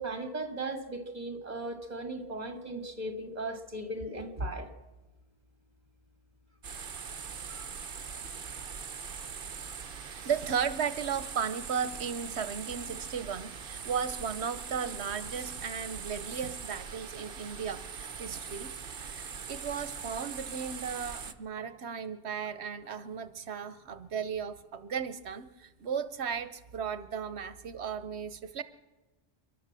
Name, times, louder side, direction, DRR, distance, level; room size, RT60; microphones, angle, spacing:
voice 1, 0.0-4.7 7.5-7.7, right 2 dB, 40° right, 5 dB, 2.4 m, -37 dB
sound 1, 6.6-21.3, right 6 dB, 55° right, 1.1 m, -41 dB
voice 2, 10.0-28.6, right 7 dB, 75° right, 13 dB, 1.1 m, -35 dB
29.5 x 12.0 x 7.5 m, 1.1 s
omnidirectional pair, 1.1 m